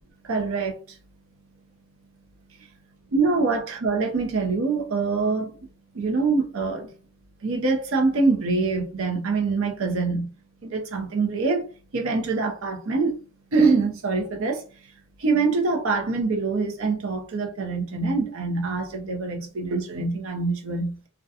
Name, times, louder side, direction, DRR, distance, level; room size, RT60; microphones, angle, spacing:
voice 1, 0.3-1.0 3.1-5.6 5.9-6.9 7.4-10.3 10.6-11.6 11.9-13.2 13.5-14.6 15.2-21.0, right 4 dB, 65° right, 0.6 m, -24 dB
2.3 x 2.1 x 2.7 m
head